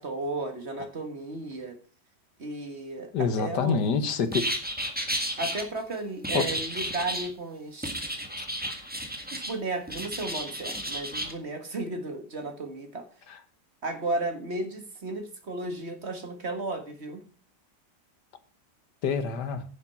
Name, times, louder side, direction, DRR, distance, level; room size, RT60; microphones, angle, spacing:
voice 1, 0.0-1.8 2.4-3.8 5.4-8.0 9.3-13.1 13.8-17.2, right 2 dB, 40° right, 7 dB, 1.9 m, -34 dB
voice 2, 3.1-4.5 6.3-6.5 8.4-8.5 19.0-19.6, left 5 dB, 80° left, 11 dB, 1.8 m, -26 dB
sound 1, 4.3-5.6 6.2-7.3 7.8-9.5 9.9-11.3, equal, 5° right, 1.5 m, -32 dB
10.5 x 7.3 x 5.6 m, 0.40 s
omnidirectional pair, 1.8 m